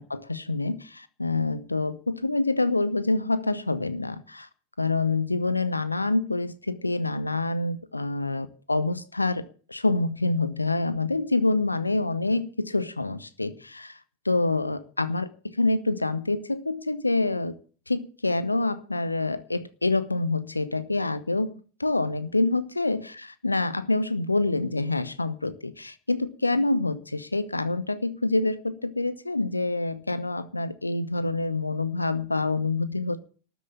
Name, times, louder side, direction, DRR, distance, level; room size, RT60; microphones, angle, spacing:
voice 1, 0.0-4.5 4.8-14.0 14.2-17.6 17.9-21.5 21.8-33.2, left 2 dB, 80° left, 0.9 m, -26 dB
13.0 x 7.2 x 9.8 m
figure-of-eight pair, 90°, 0 cm